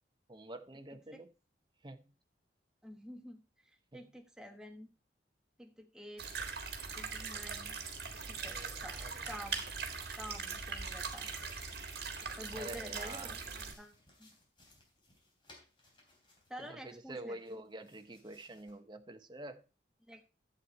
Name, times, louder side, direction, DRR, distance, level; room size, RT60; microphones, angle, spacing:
voice 1, 0.3-1.3 1.8-2.1 3.9-4.0 8.4-9.2 12.5-13.3 16.6-19.6, right 1 dB, 25° right, 0.8 m, -47 dB
voice 2, 2.8-4.9 5.6-6.3 6.9-7.8 8.3-9.0 9.2-9.7 10.2-11.3 12.4-14.3 16.5-17.6 20.0-20.2, equal, 5° right, 1.2 m, -49 dB
sound 1, 6.2-13.7, right 5 dB, 55° right, 1.7 m, -41 dB
sound 2, 7.6-17.0 17.3-18.7, left 2 dB, 25° left, 3.6 m, -62 dB
11.5 x 8.0 x 4.2 m
head